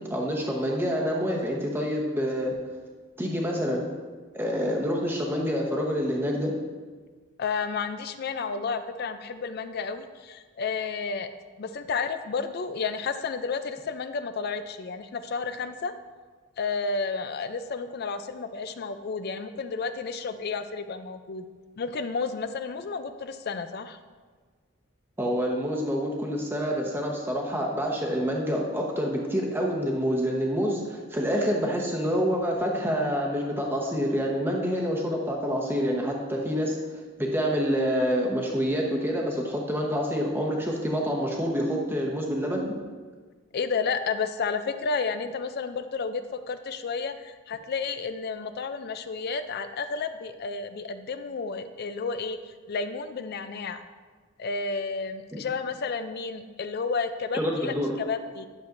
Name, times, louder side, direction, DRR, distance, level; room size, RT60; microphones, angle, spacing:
voice 1, 0.1-2.5 3.2-3.9 4.3-6.5 25.2-36.7 37.2-42.7 57.3-57.9, equal, 10° right, -1 dB, 1.0 m, -27 dB
voice 2, 7.4-11.3 11.6-15.9 16.6-21.4 21.8-24.0 43.5-46.2 46.5-52.4 52.7-53.8 54.4-58.5, left 4 dB, 50° left, 10 dB, 0.4 m, -31 dB
10.5 x 6.8 x 2.6 m, 1.5 s
head